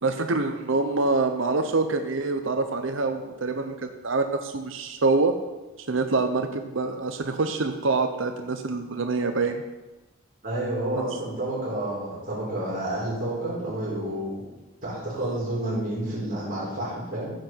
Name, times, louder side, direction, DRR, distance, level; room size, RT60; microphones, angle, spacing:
voice 1, 0.0-3.7 4.0-5.3 5.9-9.6 11.0-11.1, right 3 dB, 70° right, 6 dB, 0.8 m, -25 dB
voice 2, 10.4-14.4 14.8-17.3, right 1 dB, 45° right, -7 dB, 4.3 m, -30 dB
15.5 x 7.8 x 4.6 m, 1.1 s
head